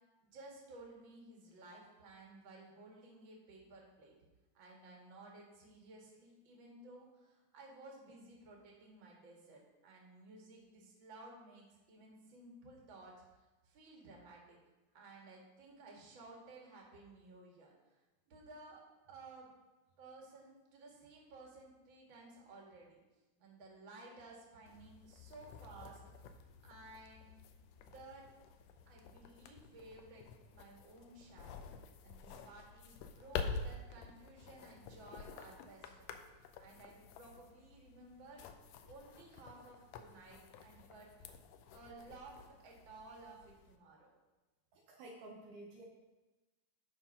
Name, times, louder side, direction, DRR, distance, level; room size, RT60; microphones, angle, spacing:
voice 1, 0.2-4.1 4.5-14.6 14.9-18.0 18.3-18.8 19.1-19.5 20.0-23.0 23.4-26.4 26.6-27.3 27.8-28.3 28.9-30.3 30.5-31.6 32.0-36.2 36.6-38.5 38.9-41.1 41.7-44.1, right 2 dB, 40° right, -2 dB, 2.4 m, -56 dB
sound 1, 24.7-43.8, left 5 dB, 80° left, 2.0 m, -49 dB
voice 2, 44.7-45.8, right 2 dB, 75° right, -1 dB, 2.4 m, -52 dB
11.5 x 4.5 x 5.4 m, 1.1 s
omnidirectional pair, 3.9 m